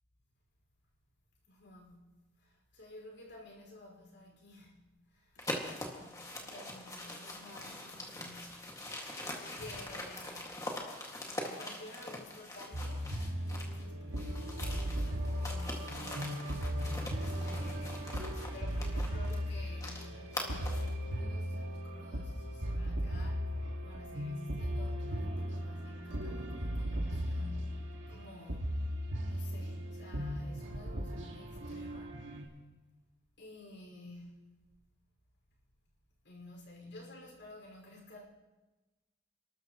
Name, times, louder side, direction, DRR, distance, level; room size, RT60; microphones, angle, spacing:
voice 1, 1.4-2.1 2.4-8.9 9.4-10.6 11.3-13.1 13.5-28.8 29.3-32.4 33.4-34.5 36.2-38.2, left 1 dB, 75° left, 5.3 m, -52 dB
sound 1, 5.4-13.8 14.1-20.9, left 1 dB, 15° left, 2.0 m, -43 dB
sound 2, 12.7-32.5, equal, 90° right, 2.0 m, -37 dB
29.0 x 13.0 x 3.1 m
head